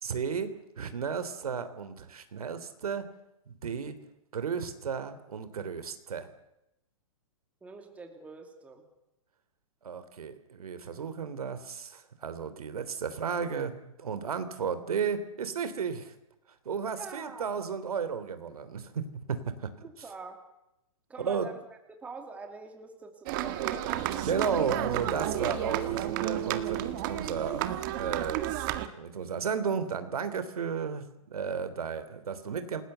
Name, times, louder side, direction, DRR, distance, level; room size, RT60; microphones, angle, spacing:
voice 1, 0.0-3.0 3.5-4.0 4.3-6.3 9.8-16.1 16.7-19.9 21.2-21.5 24.2-27.7 28.0-28.5 29.0-32.8, right 6 dB, 85° right, 11 dB, 3.5 m, -33 dB
voice 2, 7.6-8.8 16.9-17.5 19.8-20.4 21.1-21.6 21.9-23.8, right 4 dB, 5° right, 4 dB, 2.6 m, -45 dB
sound 1, 23.3-28.9, right 12 dB, 35° right, 1.8 m, -31 dB
28.0 x 20.0 x 8.1 m, 0.88 s
hypercardioid pair, 160°, 18 cm